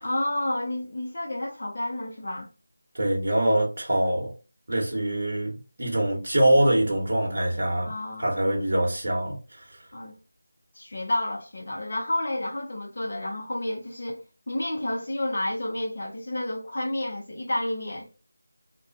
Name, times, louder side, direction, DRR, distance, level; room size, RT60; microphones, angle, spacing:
voice 1, 0.0-2.5 7.8-8.3 9.9-10.2 10.7-18.1, left 1 dB, 45° left, 0.7 m, -30 dB
voice 2, 2.9-4.3 4.7-7.9 8.2-9.8, right 1 dB, 45° right, 0.9 m, -24 dB
2.4 x 2.2 x 2.3 m
figure-of-eight pair, 165°, 0 cm